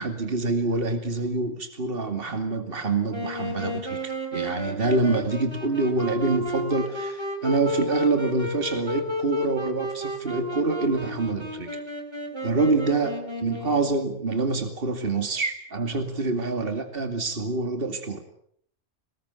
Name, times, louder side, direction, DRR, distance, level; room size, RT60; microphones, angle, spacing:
voice 1, 0.0-11.7 12.4-18.2, right 3 dB, 50° right, 7 dB, 2.6 m, -26 dB
Wind instrument woodwind instrument, 3.1-14.2, left 1 dB, 20° right, 4.2 m, -32 dB
24.0 x 20.5 x 8.2 m, 0.65 s
omnidirectional pair, 1.2 m